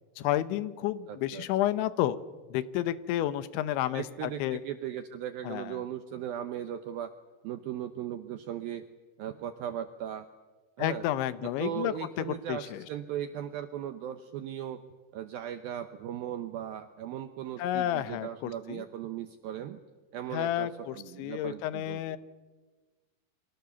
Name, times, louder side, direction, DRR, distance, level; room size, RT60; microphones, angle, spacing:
voice 1, 0.2-2.2 2.5-4.6 5.4-5.8 10.8-12.8 17.6-18.8 20.3-22.2, left 13 dB, 80° left, 14 dB, 3.2 m, -31 dB
voice 2, 1.1-1.5 3.9-7.1 7.4-8.9 9.2-10.3 10.8-11.0 11.4-14.8 15.1-19.8 20.1-22.2, right 10 dB, 80° right, 8 dB, 2.1 m, -38 dB
29.5 x 24.5 x 7.1 m, 1.3 s
omnidirectional pair, 5.4 m